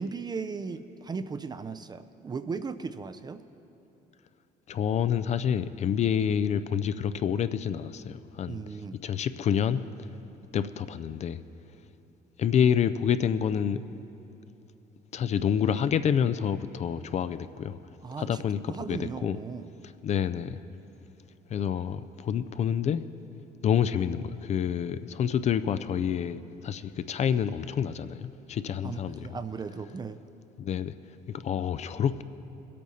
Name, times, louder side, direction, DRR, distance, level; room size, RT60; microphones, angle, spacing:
voice 1, 0.0-3.4 8.5-9.0 18.0-18.4 18.7-19.7 28.8-30.2, right 5 dB, 25° right, 11 dB, 0.4 m, -37 dB
voice 2, 4.7-8.6 9.0-9.8 10.5-11.4 12.4-13.8 15.1-17.8 18.2-19.4 20.0-20.6 21.5-23.0 23.6-29.3 30.6-30.9 31.3-32.2, left 8 dB, 40° left, 13 dB, 0.4 m, -28 dB
21.0 x 8.4 x 4.1 m, 3.0 s
cardioid pair, 110°, 17 cm